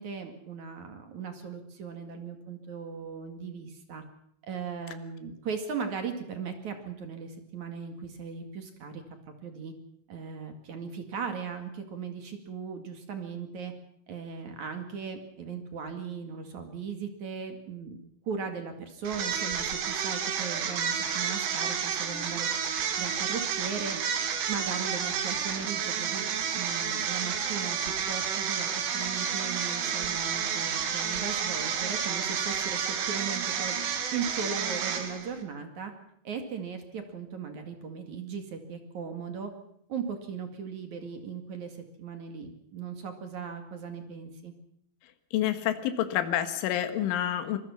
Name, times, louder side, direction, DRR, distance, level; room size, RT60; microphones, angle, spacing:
voice 1, 0.0-4.0 4.4-9.0 9.4-9.7 10.1-13.7 14.1-18.0 18.2-22.5 23.0-24.0 24.5-26.3 26.5-35.9 36.2-39.5 39.9-44.5, right 6 dB, 50° right, 6 dB, 2.7 m, -38 dB
sound 1, 19.1-35.4, right 7 dB, 85° right, 4.9 m, -30 dB
voice 2, 45.3-47.6, left 11 dB, 80° left, 9 dB, 4.0 m, -28 dB
25.5 x 20.5 x 5.8 m, 0.71 s
omnidirectional pair, 5.6 m